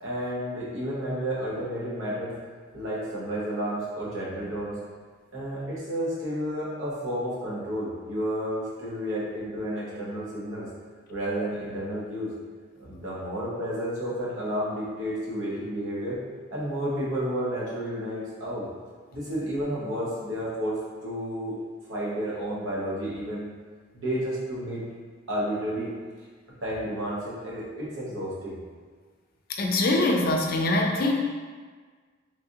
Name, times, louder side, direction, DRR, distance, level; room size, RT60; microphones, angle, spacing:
voice 1, 0.0-2.4 2.7-4.8 5.3-10.7 11.1-12.3 12.8-16.2 16.5-18.7 19.1-21.6 21.9-23.5 23.9-24.8 25.3-25.9 26.6-28.6, equal, 80° right, -7 dB, 1.0 m, -31 dB
voice 2, 29.6-31.1, left 2 dB, 50° left, 1 dB, 0.4 m, -23 dB
3.2 x 2.7 x 2.4 m, 1.5 s
head